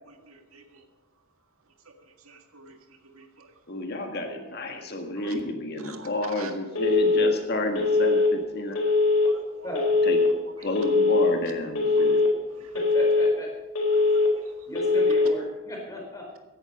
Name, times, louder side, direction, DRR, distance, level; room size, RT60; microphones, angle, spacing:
voice 1, 2.3-2.8 3.1-3.5 5.2-5.3 5.8-6.1 6.4-6.5 9.3-9.7 14.1-14.3, right 5 dB, 75° right, 5 dB, 1.9 m, -46 dB
voice 2, 3.7-8.8 10.0-10.2 10.6-12.2, left 2 dB, 45° left, 4 dB, 1.6 m, -30 dB
Telephone, 6.8-7.3 7.8-8.3 8.8-9.3 9.8-10.3 10.8-11.3 11.8-12.3 12.8-13.3 13.8-14.3 14.8-15.3, left 3 dB, 80° left, 4.0 m, -21 dB
voice 3, 12.9-13.5 14.7-16.4, left 1 dB, 15° left, -1 dB, 4.4 m, -35 dB
16.5 x 10.5 x 5.4 m, 1.2 s
head